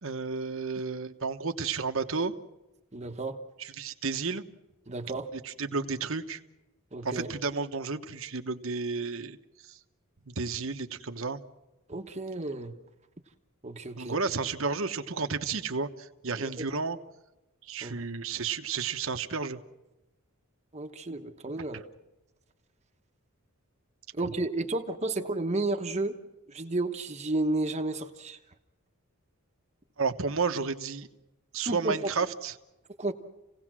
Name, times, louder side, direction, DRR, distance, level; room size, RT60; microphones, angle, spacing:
voice 1, 0.0-2.3 3.6-4.4 5.3-6.4 7.0-9.4 9.6-9.8 10.3-11.4 14.0-17.0 17.6-19.6 24.2-24.3 30.0-31.1 31.5-32.5, right 4 dB, 65° right, 7 dB, 1.2 m, -32 dB
voice 2, 2.9-3.4 4.9-5.3 6.9-7.3 11.9-12.7 13.6-14.2 16.3-16.6 17.8-18.0 20.7-21.8 24.1-26.2 26.5-28.4 31.7-32.1 33.0-33.1, right 2 dB, 30° right, 5 dB, 1.1 m, -32 dB
28.5 x 17.5 x 6.2 m, 0.99 s
head